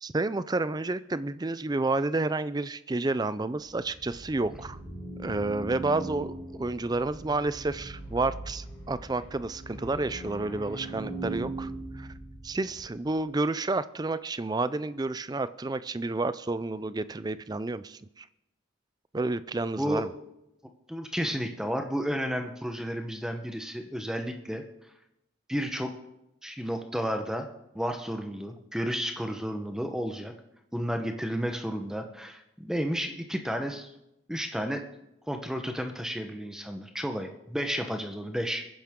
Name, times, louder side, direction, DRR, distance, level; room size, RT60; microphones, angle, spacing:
voice 1, 0.0-4.8 5.2-12.1 12.4-18.3 19.1-20.1, right 2 dB, 20° right, 15 dB, 0.4 m, -30 dB
sound 1, 3.6-13.0, right 2 dB, 20° left, 4.7 m, -40 dB
voice 2, 20.9-24.6 25.5-25.9 26.4-27.5 27.7-30.3 30.7-33.9 34.3-34.8 35.3-38.6, equal, 5° right, 5 dB, 0.9 m, -32 dB
23.0 x 10.5 x 3.7 m, 0.87 s
head